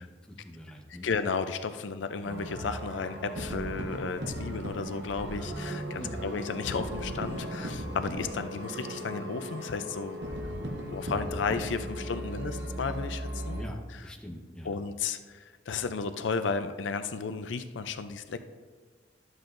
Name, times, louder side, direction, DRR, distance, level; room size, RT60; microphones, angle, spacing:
voice 1, 0.0-1.1 6.0-6.3 13.5-14.8, equal, 5° left, -1 dB, 1.0 m, -43 dB
voice 2, 1.0-10.2 10.9-13.6 14.7-18.4, left 5 dB, 85° left, 9 dB, 0.5 m, -33 dB
sound 1, 2.2-13.6, equal, 65° right, 1.1 m, -37 dB
12.5 x 8.0 x 2.6 m, 1.5 s
head